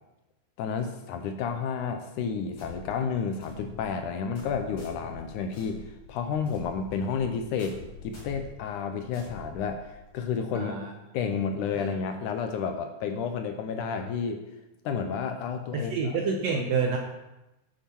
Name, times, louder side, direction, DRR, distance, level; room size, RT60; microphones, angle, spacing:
voice 1, 0.6-10.8 11.1-14.4 14.9-16.2, left 6 dB, 75° left, 6 dB, 2.0 m, -31 dB
sound 1, 2.6-10.2, left 2 dB, 55° left, 5.5 m, -46 dB
voice 2, 10.5-10.9 11.7-11.9 15.7-17.0, right 5 dB, 75° right, 1 dB, 1.6 m, -28 dB
10.5 x 7.5 x 4.3 m, 0.97 s
omnidirectional pair, 3.9 m